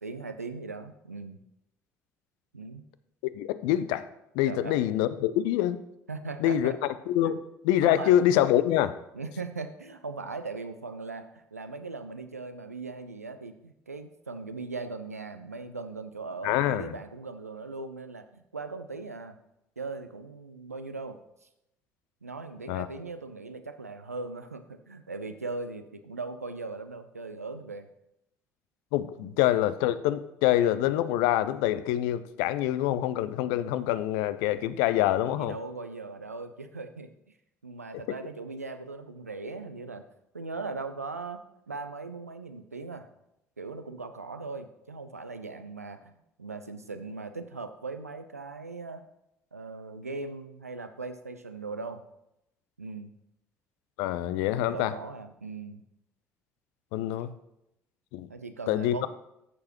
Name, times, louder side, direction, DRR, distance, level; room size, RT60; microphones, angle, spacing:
voice 1, 0.0-1.4 2.5-2.8 4.4-4.9 6.1-6.8 7.2-7.3 7.8-8.1 9.1-19.4 19.8-21.2 22.2-27.9 29.2-29.4 35.4-37.3 37.6-40.0 40.3-43.1 43.6-49.0 49.5-52.0 52.8-53.1 54.5-55.8 58.3-59.1, right 3 dB, 85° right, 9 dB, 0.5 m, -39 dB
voice 2, 3.2-4.0 4.3-5.8 6.4-6.7 7.1-9.0 16.4-16.9 22.7-22.9 28.9-35.6 38.1-38.2 54.0-54.9 56.9-57.3 58.1-58.3 58.7-59.1, left 12 dB, 60° left, 14 dB, 0.5 m, -25 dB
13.5 x 6.7 x 3.0 m, 0.85 s
figure-of-eight pair, 50°, 8 cm